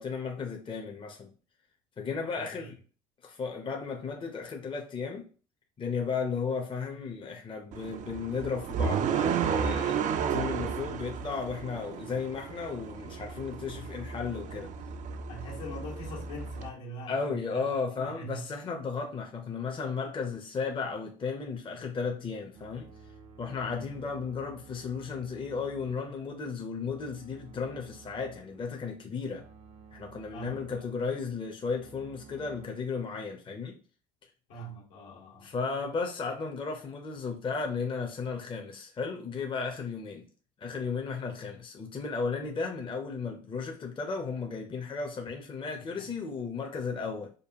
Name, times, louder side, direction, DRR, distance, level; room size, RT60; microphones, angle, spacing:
voice 1, 0.0-1.3 2.0-2.8 3.2-5.3 5.8-14.7 17.1-22.9 23.4-29.4 29.9-33.8 35.4-40.3 40.6-47.3, left 5 dB, 30° left, 0.7 m, -34 dB
voice 2, 2.3-2.7 15.3-17.7 18.0-18.5 23.6-23.9 30.3-30.9 34.5-35.5 45.8-46.1, right 1 dB, 75° left, 1.4 m, -43 dB
sound 1, 7.7-16.7, right 7 dB, 45° right, 0.4 m, -33 dB
sound 2, 22.5-32.7, right 5 dB, 75° right, 0.9 m, -54 dB
5.1 x 2.2 x 2.8 m
hypercardioid pair, 80°, 18 cm